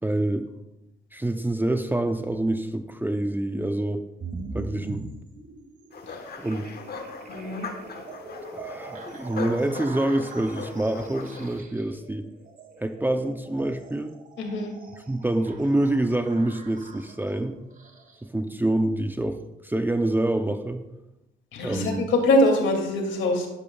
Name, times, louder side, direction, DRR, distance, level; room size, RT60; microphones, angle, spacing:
voice 1, 0.0-0.4 1.1-4.0 4.5-5.0 6.4-6.7 8.5-12.3 12.8-14.2 15.1-17.6 18.2-20.8 21.6-22.1, right 1 dB, 10° right, 7 dB, 0.6 m, -26 dB
sound 1, 4.2-18.3, right 3 dB, 45° right, 1.9 m, -42 dB
sound 2, 5.9-11.6, left 4 dB, 50° left, 1.4 m, -40 dB
voice 2, 7.3-7.6 14.4-14.7 21.5-23.5, left 1 dB, 75° left, 2 dB, 2.5 m, -23 dB
12.0 x 11.0 x 2.4 m, 0.95 s
cardioid pair, 90°, 20 cm